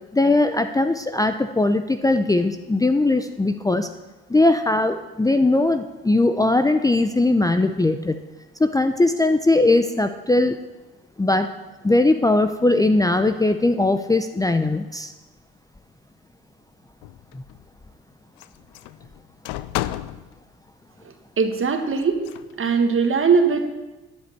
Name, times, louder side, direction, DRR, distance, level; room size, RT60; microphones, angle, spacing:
voice 1, 0.1-3.9 4.3-8.2 8.6-10.6 11.2-11.5 11.8-15.1 17.3-17.4, left 2 dB, 10° left, 9 dB, 0.6 m, -19 dB
sound 1, 17.0-17.6 18.4-20.3 22.0-22.5, left 15 dB, 85° left, 0.5 m, -32 dB
voice 2, 21.0-22.2 22.6-23.7, right 5 dB, 45° right, 5 dB, 1.6 m, -20 dB
11.0 x 5.1 x 8.5 m, 1.1 s
hypercardioid pair, 55°, 30 cm